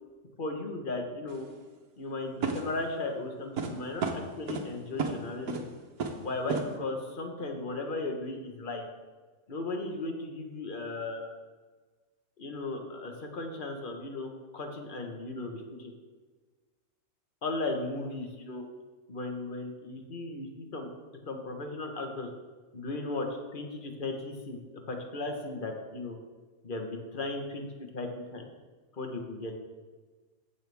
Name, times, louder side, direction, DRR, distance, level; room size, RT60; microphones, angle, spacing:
voice 1, 0.4-1.5 2.0-5.7 6.2-8.9 9.5-11.3 12.4-15.9 17.4-18.7 19.1-20.9 21.3-22.3 22.7-23.3 23.5-24.6 24.9-26.2 26.6-27.7 27.9-28.5 29.0-29.5, left 2 dB, 35° left, 3 dB, 1.4 m, -36 dB
sound 1, 1.3-1.4 2.4-2.8 3.6-3.7 4.0-4.7 5.0-5.2 5.5-5.7 6.0-6.2 6.5-6.7, right 4 dB, 90° right, 1.5 m, -32 dB
15.0 x 6.9 x 3.5 m, 1.3 s
omnidirectional pair, 1.5 m